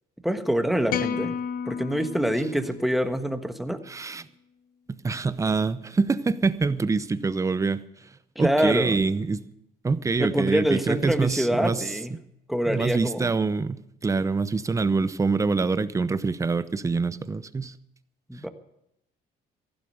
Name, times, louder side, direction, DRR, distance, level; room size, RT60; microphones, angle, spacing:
voice 1, 0.2-1.4 1.6-3.8 8.3-9.0 10.2-12.2 12.5-13.3 18.3-18.5, equal, ahead, 7 dB, 1.4 m, -25 dB
sound 1, 0.9-3.3, left 7 dB, 60° left, 0.9 m, -32 dB
voice 2, 3.9-4.2 4.9-7.8 8.4-9.4 9.8-11.8 12.7-17.7, right 4 dB, 20° right, 14 dB, 0.7 m, -25 dB
15.0 x 12.0 x 6.5 m, 0.80 s
cardioid pair, 110°, 17 cm